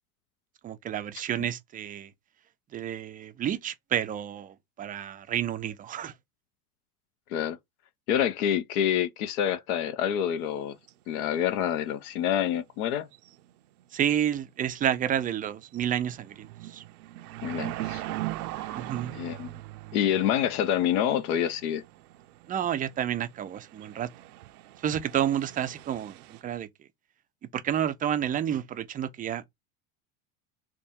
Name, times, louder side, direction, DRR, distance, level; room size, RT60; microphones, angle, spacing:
voice 1, 0.6-2.1 2.7-6.1 13.9-16.8 18.7-19.2 22.5-24.1 24.8-26.7 27.5-29.5, right 10 dB, 20° right, 0.3 m, -30 dB
voice 2, 8.1-10.8 11.1-13.1 17.4-18.0 18.6-18.8 19.1-19.5 19.9-21.8, left 10 dB, 80° left, 0.7 m, -27 dB
sound 1, 10.5-10.6 10.9-11.0 13.1-13.5 13.8-13.9 14.4-14.7 15.2-15.3 15.6-26.4, right 16 dB, 85° right, 0.5 m, -40 dB
3.4 x 2.2 x 4.2 m
supercardioid pair, 95°, 44 cm